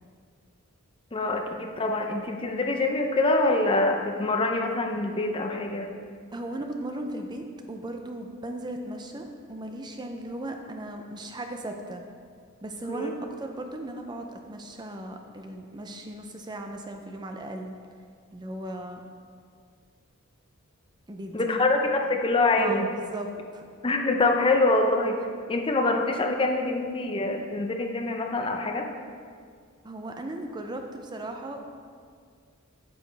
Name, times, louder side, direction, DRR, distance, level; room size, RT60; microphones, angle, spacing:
voice 1, 1.1-5.9 12.9-13.1 21.3-22.9 23.8-25.2 25.5-28.9, left 2 dB, 25° left, 3 dB, 0.6 m, -25 dB
voice 2, 6.3-12.0 12.6-17.7 18.3-19.0 21.1-21.6 22.6-23.7 29.8-31.6, right 1 dB, 20° right, 4 dB, 0.5 m, -37 dB
9.0 x 7.0 x 3.3 m, 2.1 s
head